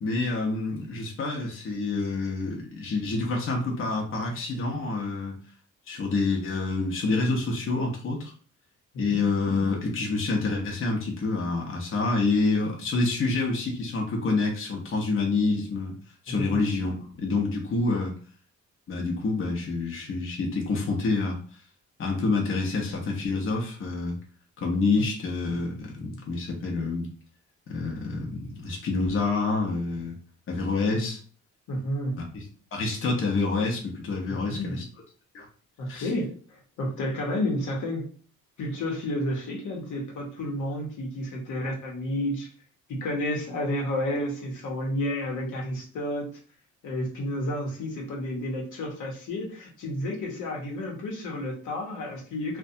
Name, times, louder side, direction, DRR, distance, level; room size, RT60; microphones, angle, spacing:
voice 1, 0.0-5.4 5.9-8.3 9.0-16.0 16.2-18.1 18.9-21.4 22.0-24.2 24.6-27.1 27.7-30.2 30.5-31.2 32.3-32.4 32.7-34.8 35.3-35.5 35.9-36.1, left 3 dB, 45° left, -1 dB, 0.8 m, -27 dB
voice 2, 16.3-16.6 24.9-25.0 29.9-30.0 30.9-31.1 31.7-32.2 34.3-34.8 35.8-38.1 38.6-42.5 42.9-46.3 46.8-52.6, left 1 dB, 75° left, -1 dB, 0.9 m, -31 dB
2.6 x 2.2 x 2.6 m, 0.42 s
cardioid pair, 90°, 30 cm